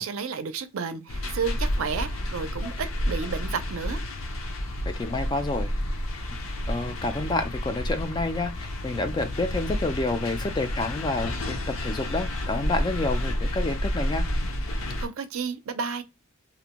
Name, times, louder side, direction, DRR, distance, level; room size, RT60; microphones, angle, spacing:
voice 1, 0.0-4.0 15.0-16.0, right 5 dB, 75° right, 0.4 m, -31 dB
sound 1, 1.1-15.1, left 1 dB, 75° left, 0.6 m, -30 dB
voice 2, 4.9-5.7 6.7-14.2, left 2 dB, 20° left, 0.3 m, -29 dB
2.5 x 2.1 x 2.9 m
head